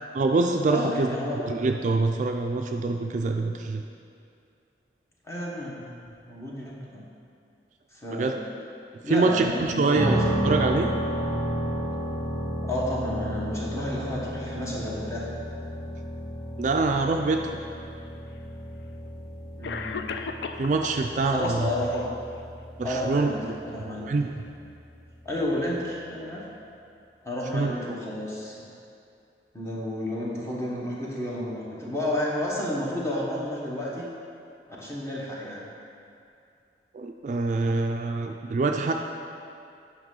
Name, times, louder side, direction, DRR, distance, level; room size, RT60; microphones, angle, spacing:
voice 1, 0.2-1.1 1.5-3.8 8.1-8.3 9.1-10.9 16.6-17.6 20.6-21.7 22.8-23.5 24.1-24.3 27.5-27.7 36.9-38.9, right 3 dB, 45° right, 4 dB, 0.3 m, -25 dB
voice 2, 0.7-1.4 5.3-7.1 7.9-8.3 9.0-10.3 12.6-15.3 19.6-20.2 21.3-22.2 22.8-24.1 25.2-26.5 27.2-28.7 29.5-34.1 34.8-35.7, left 1 dB, 15° left, -5 dB, 1.2 m, -31 dB
sound 1, 10.0-25.8, equal, 15° right, 1.3 m, -33 dB
Cough, 17.9-18.0 19.0-19.1 19.6-21.1 21.4-22.1, left 5 dB, 75° left, 0.4 m, -35 dB
9.0 x 5.5 x 3.8 m, 2.5 s
head